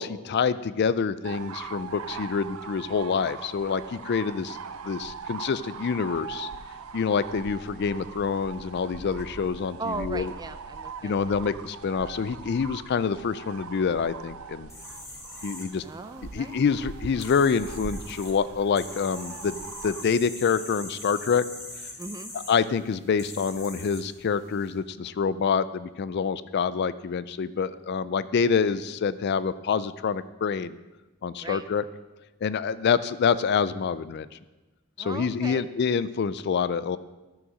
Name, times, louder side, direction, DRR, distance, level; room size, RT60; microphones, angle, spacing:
voice 1, 0.0-4.6 4.8-6.5 6.9-10.3 11.0-14.7 15.4-15.8 16.3-21.4 22.3-30.8 31.2-31.8 32.4-34.3 35.0-37.0, left 6 dB, 50° left, 16 dB, 0.3 m, -26 dB
sound 1, 1.2-20.0, right 5 dB, 80° right, 0.5 m, -41 dB
voice 2, 9.8-11.6 15.8-16.7 22.0-22.3 31.4-31.7 35.0-35.7, right 3 dB, 20° right, 11 dB, 0.4 m, -38 dB
sound 2, 14.7-24.7, left 1 dB, 15° left, 1.7 m, -43 dB
12.0 x 6.4 x 6.1 m, 1.1 s
head